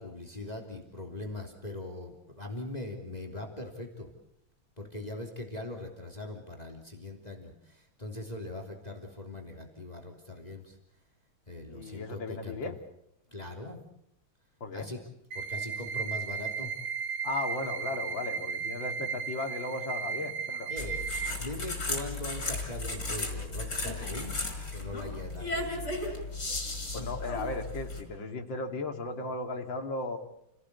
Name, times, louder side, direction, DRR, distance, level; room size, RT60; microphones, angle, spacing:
voice 1, 0.0-4.1 4.8-10.8 11.5-12.8 13.3-13.8 14.7-15.0 15.3-16.7 20.7-24.5 24.7-25.8 26.9-27.2, left 2 dB, 20° left, 3 dB, 3.3 m, -41 dB
voice 2, 11.7-12.8 14.6-14.9 17.2-20.7 26.9-30.2, left 2 dB, 60° left, 4 dB, 3.2 m, -36 dB
sound 1, 15.3-21.3, right 6 dB, 60° right, 3.1 m, -35 dB
sound 2, 20.8-28.0, left 2 dB, 45° left, 5.4 m, -35 dB
30.0 x 18.0 x 8.3 m, 0.79 s
omnidirectional pair, 2.3 m